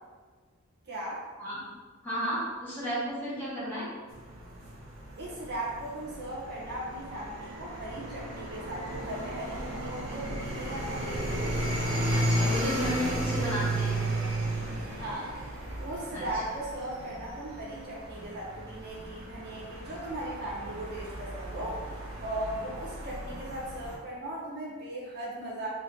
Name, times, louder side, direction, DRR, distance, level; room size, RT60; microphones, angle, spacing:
voice 1, 0.9-1.2 5.2-11.5 15.0-15.4 15.8-21.8 22.2-25.7, right 1 dB, 50° right, -6 dB, 0.9 m, -38 dB
voice 2, 2.0-3.8 12.1-14.0 16.1-16.2, equal, 10° left, -10 dB, 1.5 m, -33 dB
sound 1, 4.1-24.0, right 1 dB, 70° right, 1.2 m, -34 dB
3.8 x 3.0 x 3.8 m, 1.4 s
head